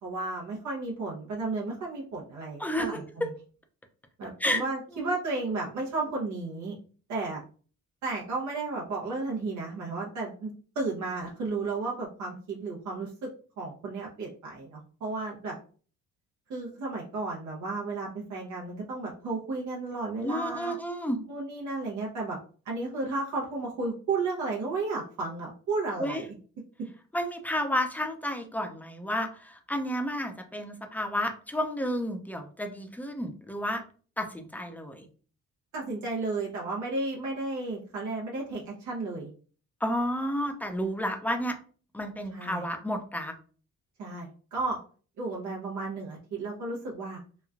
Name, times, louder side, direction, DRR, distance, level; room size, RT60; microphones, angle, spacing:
voice 1, 0.0-3.3 4.2-6.8 7.1-7.4 8.0-13.3 13.6-15.6 16.5-20.8 21.3-22.4 22.7-26.3 35.7-39.3 42.3-42.6 44.0-44.8 45.2-47.2, right 3 dB, 75° right, -3 dB, 0.8 m, -33 dB
voice 2, 2.6-3.3 4.4-4.6 4.9-5.1 20.2-21.2 26.0-26.2 27.1-33.8 34.2-35.1 39.8-41.6 41.9-43.3, equal, 5° left, 5 dB, 0.5 m, -31 dB
3.0 x 2.2 x 2.4 m, 0.40 s
cardioid pair, 90°, 30 cm